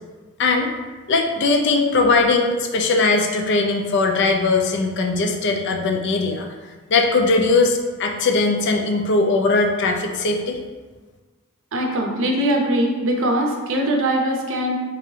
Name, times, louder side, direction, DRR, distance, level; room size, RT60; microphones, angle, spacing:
voice 1, 0.4-0.7 1.1-6.5 6.9-10.6, left 3 dB, 55° left, 3 dB, 0.4 m, -19 dB
voice 2, 11.7-14.8, right 1 dB, 65° right, 1 dB, 0.6 m, -21 dB
3.4 x 3.0 x 3.2 m, 1.4 s
head